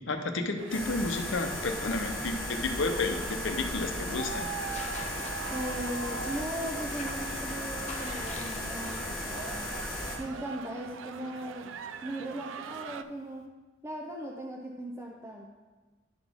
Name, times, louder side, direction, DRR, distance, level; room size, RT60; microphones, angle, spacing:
voice 1, 0.1-4.5, left 3 dB, 70° left, 5 dB, 0.7 m, -31 dB
sound 1, 0.6-13.0, right 6 dB, 75° right, 0.3 m, -43 dB
sound 2, 0.7-10.2, left 1 dB, 5° left, 1.5 m, -36 dB
Tearing, 1.2-13.5, left 3 dB, 35° left, 0.6 m, -49 dB
voice 2, 5.5-9.7 10.2-11.7 12.0-13.4 13.8-15.5, right 1 dB, 15° right, 0 dB, 0.5 m, -38 dB
11.5 x 4.0 x 3.6 m, 1.3 s
head